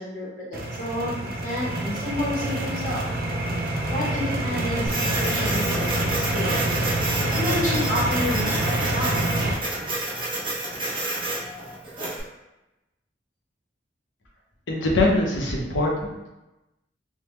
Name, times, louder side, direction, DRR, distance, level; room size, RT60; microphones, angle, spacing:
voice 1, 0.0-3.1 3.9-6.6 7.3-9.5, left 1 dB, 45° left, -8 dB, 0.8 m, -30 dB
sound 1, 0.5-9.5, right 1 dB, 55° right, 0.5 m, -26 dB
Printer, 4.9-12.2, right 2 dB, 25° right, 0.8 m, -30 dB
voice 2, 14.7-16.3, left 2 dB, 80° left, -1 dB, 0.7 m, -23 dB
3.4 x 2.1 x 3.0 m, 0.98 s
head